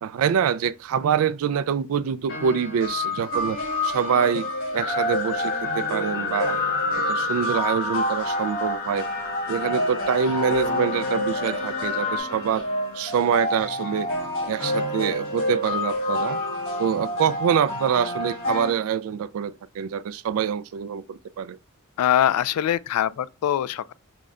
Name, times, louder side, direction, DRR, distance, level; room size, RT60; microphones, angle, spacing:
voice 1, 0.0-6.6 7.1-9.1 9.5-12.7 12.9-14.1 14.4-16.4 16.8-21.6, right 7 dB, 65° right, 0.3 m, -25 dB
sound 1, 2.3-18.7, left 1 dB, 65° left, 1.7 m, -28 dB
sound 2, 4.7-12.2, left 5 dB, 45° left, 0.7 m, -31 dB
voice 2, 22.0-23.9, left 10 dB, 85° left, 0.3 m, -23 dB
5.1 x 2.2 x 3.6 m
head